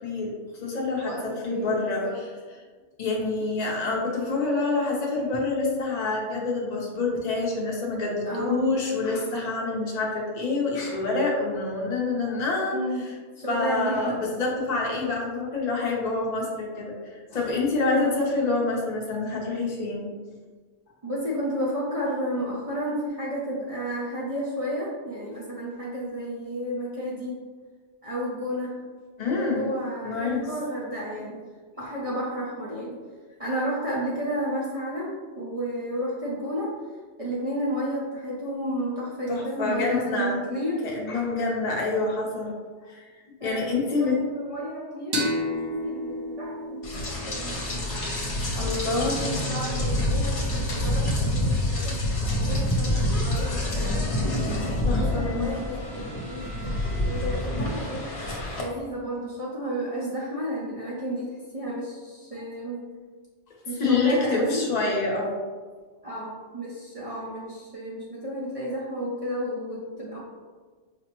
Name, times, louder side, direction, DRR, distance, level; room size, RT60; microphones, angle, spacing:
voice 1, 0.0-0.3 0.6-1.1 1.4-2.0 3.0-13.1 13.5-20.1 29.2-29.7 30.0-30.5 39.3-40.4 40.8-42.5 42.9-43.1 43.4-44.2 48.6-49.4 53.4-53.5 54.8-55.5 63.8-65.3, left 3 dB, 40° left, -3 dB, 0.7 m, -27 dB
voice 2, 1.0-2.2 3.0-3.3 8.2-8.7 12.7-13.0 13.4-14.2 17.9-18.2 21.0-27.4 28.0-28.8 29.2-31.4 31.8-33.0 33.4-36.7 37.2-40.8 43.4-47.9 48.8-52.0 52.3-54.1 54.8-58.1 58.6-62.8 63.7-64.6 66.0-70.2, equal, 40° right, -6 dB, 0.6 m, -32 dB
sound 1, 45.1-48.5, equal, 80° right, 1.0 m, -32 dB
Rain, 46.8-58.6, left 1 dB, 70° left, 1.0 m, -27 dB
5.1 x 2.0 x 2.9 m, 1.4 s
omnidirectional pair, 1.2 m